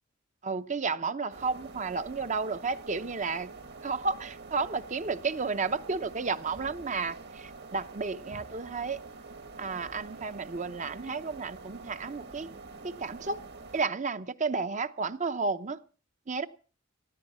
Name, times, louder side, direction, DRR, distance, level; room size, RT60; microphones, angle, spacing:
voice 1, 0.4-3.5 3.8-9.0 9.6-12.5 12.8-13.4 13.7-15.8 16.3-16.5, right 4 dB, 35° right, 0.7 m, -32 dB
computer fan, 1.3-13.8, right 3 dB, 50° right, 1.6 m, -46 dB
19.0 x 14.0 x 4.3 m
head